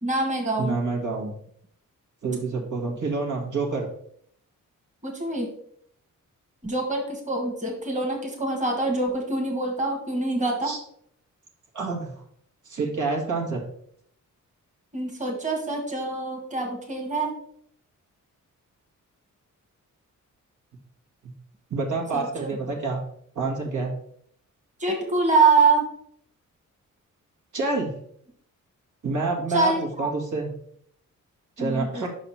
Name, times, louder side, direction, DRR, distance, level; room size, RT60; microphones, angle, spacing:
voice 1, 0.0-0.8 5.0-5.5 6.6-10.7 14.9-17.3 22.1-22.6 24.8-25.9 29.5-30.1 31.6-32.0, right 3 dB, 25° right, 1 dB, 1.6 m, -25 dB
voice 2, 0.6-1.4 2.2-3.9 10.6-10.8 11.7-12.1 12.7-13.6 21.7-23.0 23.4-24.0 27.5-27.9 29.0-30.5 31.6-32.1, right 3 dB, 70° right, -1 dB, 1.8 m, -27 dB
5.8 x 4.1 x 5.5 m, 0.66 s
wide cardioid pair, 105°, 32 cm